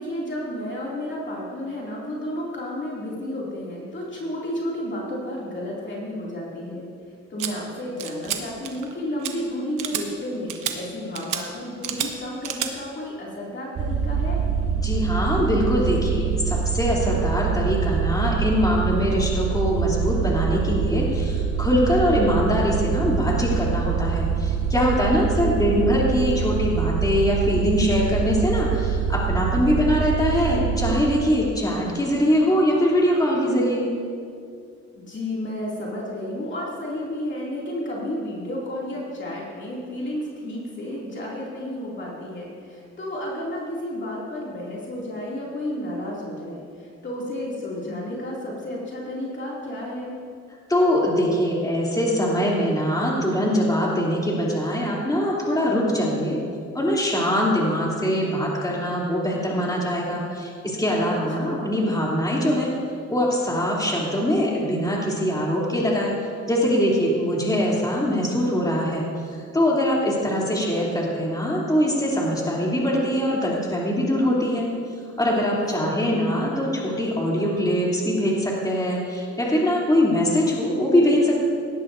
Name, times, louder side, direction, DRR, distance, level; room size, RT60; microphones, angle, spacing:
voice 1, 0.0-6.9 7.3-14.5 25.4-25.9 35.0-50.2 61.1-61.6 75.6-76.1, left 1 dB, 40° left, -5 dB, 2.7 m, -32 dB
sound 1, 7.4-7.5 8.0-8.4 8.6-8.9 9.2-9.3 9.8-10.0 10.5-10.7 11.2-11.4 11.8-12.1 12.4-12.7, right 10 dB, 85° right, 1.1 m, -29 dB
sound 2, 13.8-31.0, right 6 dB, 50° right, 1.1 m, -25 dB
voice 2, 14.8-33.8 50.7-56.4 56.7-62.7 63.1-66.1 66.5-69.0 69.3-74.7 75.2-81.4, equal, 10° left, -4 dB, 3.1 m, -22 dB
18.0 x 11.5 x 2.7 m, 2.4 s
cardioid pair, 90°, 30 cm